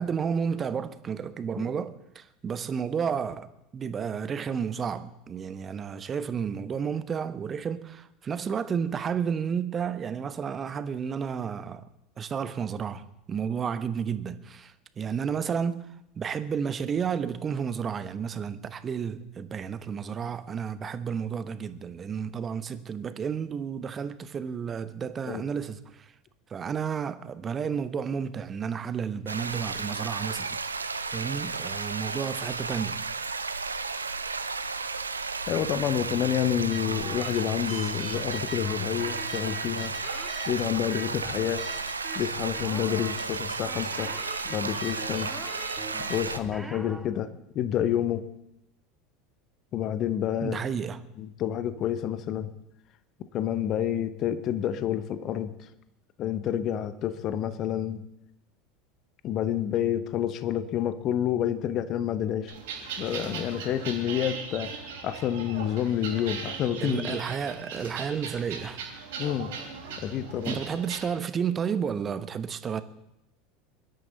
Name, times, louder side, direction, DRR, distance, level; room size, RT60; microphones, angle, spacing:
voice 1, 0.0-11.8 12.2-15.9 16.2-26.1 26.5-30.6 31.1-33.0 50.4-51.1 66.8-68.8 70.5-72.8, right 7 dB, 25° right, 1.0 m, -31 dB
sound 1, 29.3-46.4, right 4 dB, 80° right, 0.7 m, -33 dB
voice 2, 35.5-39.9 40.5-41.6 42.1-44.1 44.5-45.4 46.1-47.3 47.5-48.2 49.7-50.6 51.2-52.5 53.3-55.5 56.2-58.0 59.2-62.5 63.0-64.7 65.0-67.2 69.2-69.5 70.0-70.6, left 10 dB, 40° left, 1.0 m, -28 dB
sound 2, 36.7-47.1, right 1 dB, 5° right, 1.5 m, -43 dB
sound 3, 62.5-71.0, right 6 dB, 60° right, 3.6 m, -39 dB
24.0 x 12.5 x 4.1 m
figure-of-eight pair, 75°, 0 cm